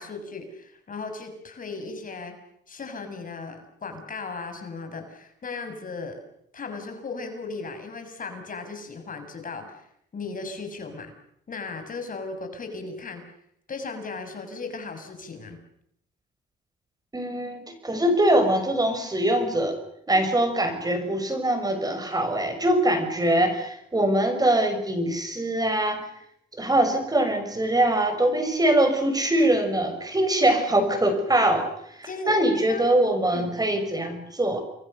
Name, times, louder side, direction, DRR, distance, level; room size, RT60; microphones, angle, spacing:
voice 1, 0.0-2.3 2.7-6.2 6.5-9.9 10.1-11.1 11.5-13.2 13.7-15.6 32.1-32.3 32.7-32.8 33.3-33.5, left 3 dB, 45° left, 6 dB, 6.7 m, -36 dB
voice 2, 17.1-19.8 20.1-26.1 26.6-31.7 32.0-34.6, right 1 dB, 20° right, 7 dB, 6.6 m, -23 dB
29.5 x 23.0 x 6.8 m, 0.73 s
cardioid pair, 90°, 20 cm